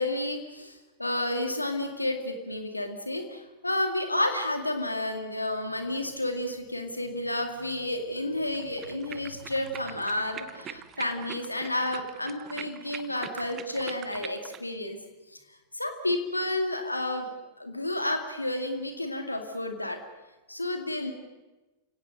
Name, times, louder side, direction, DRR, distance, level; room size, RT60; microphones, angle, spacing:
voice 1, 0.0-15.0 15.3-15.4 15.7-20.0 20.5-21.1, left 1 dB, 85° left, 6 dB, 2.2 m, -31 dB
sound 1, 8.5-14.6, right 9 dB, 30° right, 1.0 m, -43 dB
29.5 x 17.5 x 6.5 m, 1.1 s
figure-of-eight pair, 90°, 0 cm